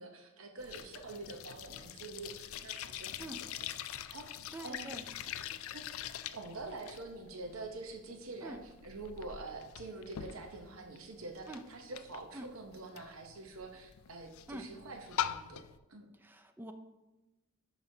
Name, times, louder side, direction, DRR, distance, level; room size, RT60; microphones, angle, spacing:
voice 1, 0.0-3.5 4.1-4.2 4.6-5.0 5.7-5.8 6.3-15.6 15.9-16.1, right 3 dB, 80° right, 3 dB, 0.8 m, -46 dB
sound 1, 0.6-15.8, left 10 dB, 80° left, 0.3 m, -44 dB
voice 2, 4.5-5.0 8.4-8.6 11.5-11.6 12.3-12.5 14.5-14.7 16.2-16.7, right 1 dB, 10° right, 7 dB, 0.4 m, -45 dB
11.0 x 5.0 x 2.7 m, 1.1 s
head